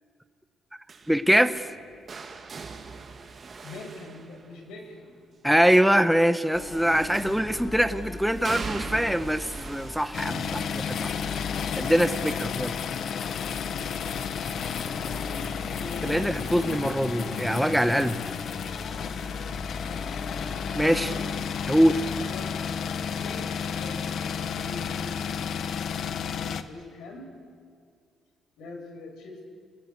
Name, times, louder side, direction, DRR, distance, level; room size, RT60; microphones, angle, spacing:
sound 1, 0.9-4.9 7.1-7.7 8.4-14.3 14.6-15.0 16.3-16.4, right 4 dB, 45° right, 2.3 m, -41 dB
voice 1, 1.1-1.7 5.4-11.1 11.8-12.7 16.0-18.2 20.8-21.1 21.7-22.0, equal, ahead, 10 dB, 1.1 m, -23 dB
voice 2, 3.6-5.1 11.5-12.1 13.9-16.1 18.0-18.1 18.8-19.2 20.7-21.2 21.8-21.9 22.2-22.6 22.9-25.4 26.3-27.3 28.6-29.4, left 3 dB, 80° left, 4 dB, 6.0 m, -43 dB
sound 2, 6.5-22.3, left 3 dB, 30° left, 3.0 m, -40 dB
sound 3, 10.1-26.6, left 7 dB, 65° left, 1.2 m, -32 dB
28.5 x 20.5 x 8.2 m, 2.2 s
cardioid pair, 90°, 0 cm